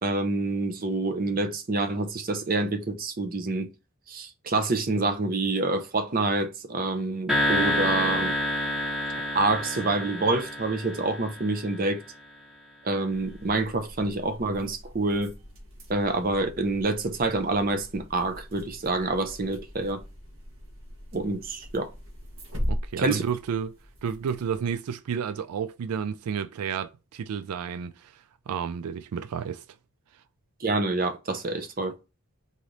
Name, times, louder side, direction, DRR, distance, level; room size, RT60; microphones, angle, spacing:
voice 1, 0.0-3.7 4.1-8.3 9.3-12.0 12.8-15.3 15.9-20.0 21.1-21.9 23.0-23.2 30.6-32.0, right 2 dB, 40° right, 0.7 m, -27 dB
sound 1, 7.3-11.8, left 1 dB, 5° right, 1.2 m, -28 dB
sound 2, 13.1-24.8, equal, 65° right, 1.4 m, -40 dB
voice 2, 22.7-23.8 24.0-29.6, right 7 dB, 85° right, 0.3 m, -31 dB
4.0 x 3.2 x 3.8 m
head